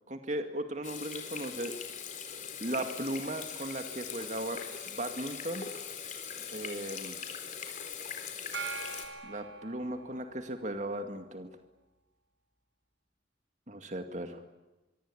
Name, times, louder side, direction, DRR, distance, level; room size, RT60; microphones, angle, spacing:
voice 1, 0.1-1.8 2.6-4.6 4.9-5.7 6.5-7.2 9.2-11.5 13.7-14.4, right 1 dB, 40° right, 7 dB, 2.2 m, -37 dB
Water tap faucet / Sink (filling or washing), 0.8-9.1, left 7 dB, 45° left, 4.2 m, -41 dB
Gong, 8.5-10.6, right 4 dB, 85° right, 4.3 m, -42 dB
25.0 x 24.5 x 8.7 m, 1.1 s
head